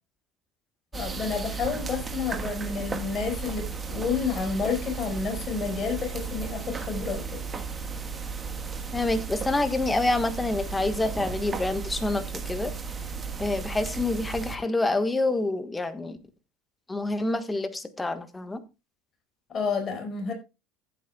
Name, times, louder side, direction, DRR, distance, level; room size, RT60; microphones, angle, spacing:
voice 1, 0.9-7.4 19.5-20.3, left 5 dB, 35° left, 4.8 m, -30 dB
sound 1, 0.9-14.6, right 5 dB, 25° right, 1.4 m, -35 dB
voice 2, 8.9-12.7 13.4-16.2 16.9-18.6, left 2 dB, 10° left, 1.3 m, -27 dB
15.0 x 8.5 x 2.3 m
supercardioid pair, 115°, 0 cm